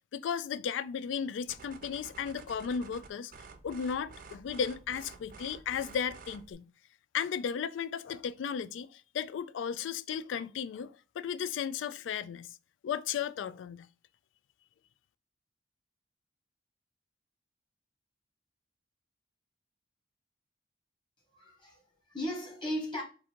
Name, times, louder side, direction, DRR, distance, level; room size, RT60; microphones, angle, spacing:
voice 1, 0.1-3.3 3.6-6.6 7.1-12.5 12.8-13.9, left 7 dB, 80° left, 0.3 m, -35 dB
sound 1, 1.5-6.5, right 4 dB, 50° right, 0.5 m, -51 dB
voice 2, 21.3-23.0, equal, 25° left, 1.4 m, -37 dB
3.7 x 2.6 x 4.3 m
head